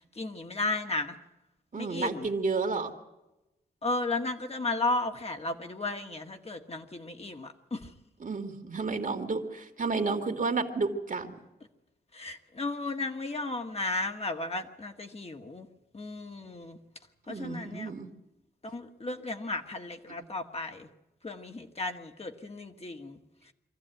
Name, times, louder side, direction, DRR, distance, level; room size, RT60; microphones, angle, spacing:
voice 1, 0.2-1.2 1.7-2.3 3.8-7.9 12.1-15.7 15.9-16.8 17.3-17.9 18.6-20.9 21.2-23.2, left 2 dB, 35° left, 4 dB, 1.7 m, -34 dB
voice 2, 1.7-2.9 8.2-11.4 17.3-18.1, right 4 dB, 50° right, 6 dB, 2.2 m, -31 dB
24.0 x 14.5 x 9.1 m, 0.99 s
wide cardioid pair, 95°, 17 cm